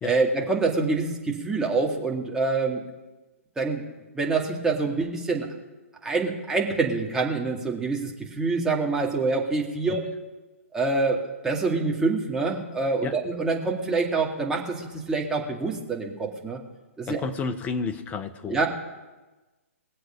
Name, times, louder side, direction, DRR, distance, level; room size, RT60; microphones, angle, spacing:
voice 1, 0.0-2.8 3.6-3.8 4.1-5.5 6.0-10.0 10.7-11.2 11.4-16.6 17.0-17.2 18.5-18.7, right 3 dB, 10° right, -1 dB, 2.2 m, -26 dB
voice 2, 17.1-18.6, left 4 dB, 20° left, 10 dB, 0.9 m, -31 dB
21.0 x 7.8 x 5.2 m, 1.2 s
figure-of-eight pair, 125°, 8 cm